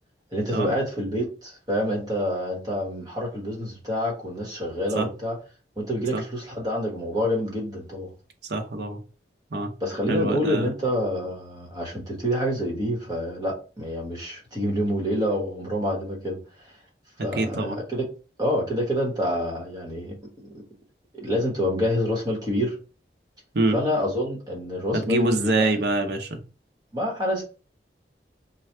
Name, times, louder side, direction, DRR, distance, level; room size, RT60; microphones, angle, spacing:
voice 1, 0.3-5.4 5.8-8.1 9.8-16.7 17.2-18.0 18.4-20.6 21.1-22.8 23.7-25.7 26.9-27.4, equal, 25° right, 1.3 m, -27 dB
voice 2, 8.5-9.0 9.5-9.7 10.1-10.7 17.4-17.8 23.5-23.8 24.9-26.4, right 2 dB, 70° right, 0.7 m, -25 dB
3.2 x 2.3 x 4.3 m
head